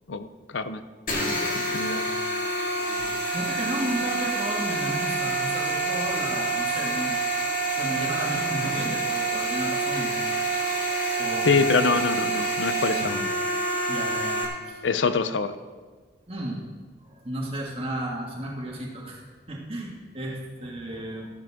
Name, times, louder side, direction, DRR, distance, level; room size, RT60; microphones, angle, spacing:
sound 1, 1.1-14.5, right 2 dB, 45° left, 2.0 m, -27 dB
voice 1, 1.5-2.1 2.3-2.7 11.4-13.3 14.8-15.6, left 4 dB, 85° left, 11 dB, 0.6 m, -25 dB
voice 2, 3.3-7.2 7.7-10.3 11.2-11.6 13.9-14.8 16.3-16.6 17.0-19.2 19.5-21.3, right 1 dB, 30° right, -2 dB, 2.0 m, -33 dB
13.5 x 12.0 x 3.7 m, 1.5 s
head